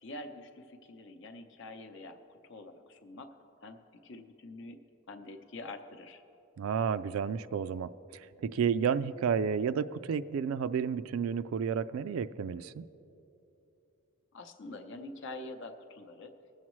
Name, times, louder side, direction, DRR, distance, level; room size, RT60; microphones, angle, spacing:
voice 1, 0.0-4.8 5.1-6.2 14.3-16.3, left 2 dB, 60° left, 7 dB, 0.7 m, -46 dB
voice 2, 6.6-12.8, right 7 dB, 85° right, 13 dB, 0.3 m, -31 dB
20.5 x 7.3 x 3.1 m, 2.9 s
head